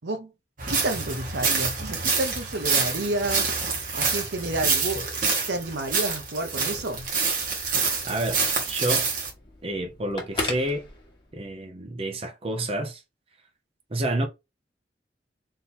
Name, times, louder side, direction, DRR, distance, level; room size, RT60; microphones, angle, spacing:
sound 1, 0.6-9.3, right 4 dB, 50° right, 1.5 m, -27 dB
voice 1, 0.7-7.1, right 2 dB, 75° right, 0.9 m, -30 dB
Telephone, 6.8-11.6, left 2 dB, 25° left, 1.3 m, -38 dB
voice 2, 8.1-8.4 8.7-9.1 9.6-10.9 11.3-13.0 13.9-14.3, right 1 dB, 35° right, 0.8 m, -29 dB
3.7 x 2.8 x 4.3 m
head